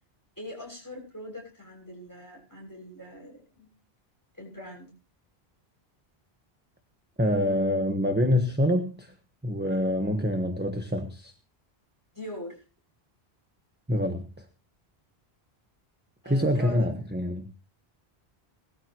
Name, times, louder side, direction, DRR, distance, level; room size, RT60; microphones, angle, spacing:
voice 1, 0.4-3.7 4.3-4.9 12.1-12.6 16.2-16.9, left 1 dB, 20° left, -1 dB, 6.9 m, -42 dB
voice 2, 7.2-9.1 9.4-11.3 13.9-14.4 16.3-17.5, left 1 dB, 10° right, 5 dB, 1.4 m, -26 dB
19.5 x 13.5 x 3.1 m, 0.34 s
omnidirectional pair, 1.0 m